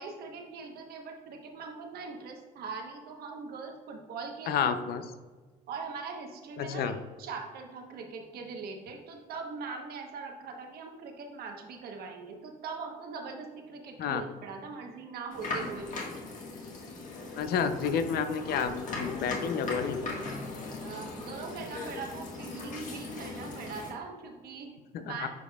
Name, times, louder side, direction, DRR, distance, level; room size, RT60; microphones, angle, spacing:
voice 1, 0.0-4.7 5.7-6.9 7.2-16.1 20.8-25.3, right 4 dB, 65° right, 3 dB, 1.0 m, -41 dB
voice 2, 4.5-5.1 6.6-6.9 14.0-14.2 17.4-20.0 24.9-25.3, left 7 dB, 65° left, 9 dB, 0.6 m, -30 dB
sound 1, 15.3-23.9, left 3 dB, 50° left, 1.6 m, -38 dB
9.3 x 4.9 x 2.3 m, 1.4 s
cardioid pair, 110°, 17 cm